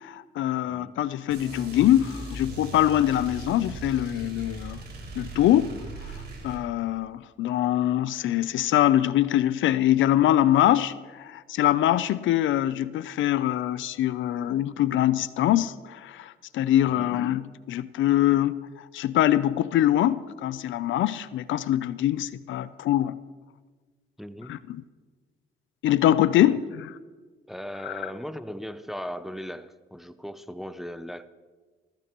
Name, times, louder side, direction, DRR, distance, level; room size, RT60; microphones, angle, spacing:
voice 1, 0.0-4.8 5.2-5.8 6.4-10.9 11.2-23.2 24.5-24.8 25.8-26.9 27.8-28.0, left 12 dB, 75° left, 16 dB, 0.5 m, -23 dB
voice 2, 0.6-1.0 16.9-17.1 24.2-24.6 27.5-31.3, equal, ahead, 11 dB, 0.6 m, -38 dB
sound 1, 1.3-6.6, right 2 dB, 55° right, 3.8 m, -39 dB
21.0 x 15.5 x 3.0 m, 1.4 s
cardioid pair, 90°, 20 cm